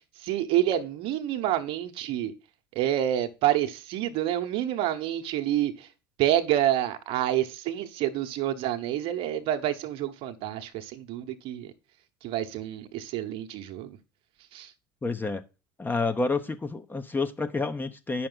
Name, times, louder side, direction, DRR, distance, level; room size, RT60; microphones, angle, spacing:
voice 1, 0.2-2.3 2.7-5.9 6.2-11.7 12.2-14.0 14.5-14.7, right 12 dB, 55° right, 1.1 m, -28 dB
voice 2, 15.0-15.4 15.8-18.3, left 3 dB, 15° left, 0.9 m, -29 dB
8.6 x 6.1 x 3.9 m
hypercardioid pair, 70°, 11 cm